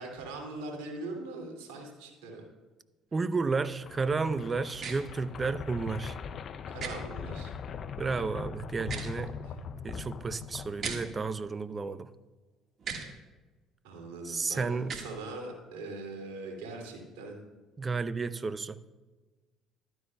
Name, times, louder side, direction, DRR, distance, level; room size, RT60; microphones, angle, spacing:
voice 1, 0.0-2.4 6.7-7.5 9.4-9.6 13.8-17.4, right 2 dB, 80° right, 1 dB, 2.5 m, -41 dB
voice 2, 3.1-6.2 8.0-9.3 9.8-12.1 14.2-15.0 17.8-18.8, right 4 dB, 30° right, 15 dB, 0.6 m, -32 dB
sound 1, 3.5-11.5, left 7 dB, 50° left, 0.5 m, -41 dB
sound 2, 4.8-5.0 6.8-6.9 8.8-9.1 10.8-11.0 12.8-13.1 14.8-15.1, right 5 dB, 50° right, 1.5 m, -36 dB
14.0 x 12.0 x 2.2 m, 1.2 s
hypercardioid pair, 65°, 0 cm